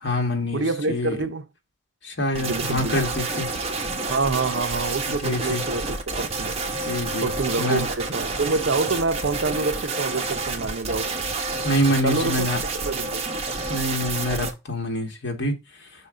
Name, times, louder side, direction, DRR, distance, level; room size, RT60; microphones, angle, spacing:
voice 1, 0.0-1.2 2.0-3.5 5.2-5.6 6.8-7.3 7.6-7.8 11.6-12.6 13.7-15.6, left 1 dB, 60° left, 1.7 m, -25 dB
voice 2, 0.5-1.4 2.4-3.0 4.1-6.6 7.2-11.1 12.0-12.5 12.7-13.3, right 3 dB, 65° right, 0.6 m, -26 dB
sound 1, 2.3-14.5, right 3 dB, 30° right, 1.1 m, -29 dB
5.5 x 4.0 x 5.0 m
head